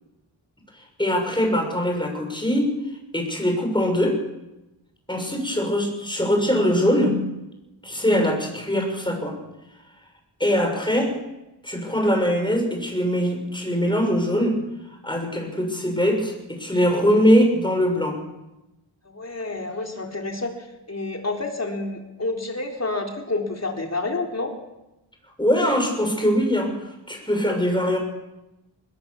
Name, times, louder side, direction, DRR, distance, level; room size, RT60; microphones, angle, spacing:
voice 1, 1.0-2.7 3.1-4.2 5.1-7.2 7.8-9.4 10.4-11.1 11.6-14.6 15.0-18.2 25.4-26.8 27.1-28.0, equal, 10° left, 3 dB, 6.4 m, -22 dB
voice 2, 19.0-24.5, left 2 dB, 35° left, 2 dB, 4.0 m, -29 dB
21.5 x 19.5 x 7.2 m, 0.96 s
wide cardioid pair, 100°, 45 cm